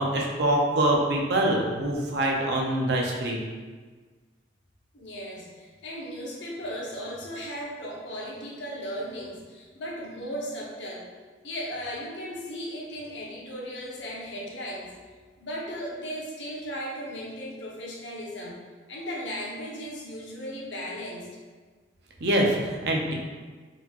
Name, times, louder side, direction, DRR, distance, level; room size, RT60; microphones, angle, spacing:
voice 1, 0.0-3.4 22.2-23.1, right 1 dB, 60° right, -1 dB, 0.6 m, -24 dB
voice 2, 4.9-11.1 11.4-14.9 15.4-18.6 18.9-21.3, equal, 75° left, -4 dB, 0.8 m, -36 dB
3.9 x 2.9 x 2.4 m, 1.4 s
head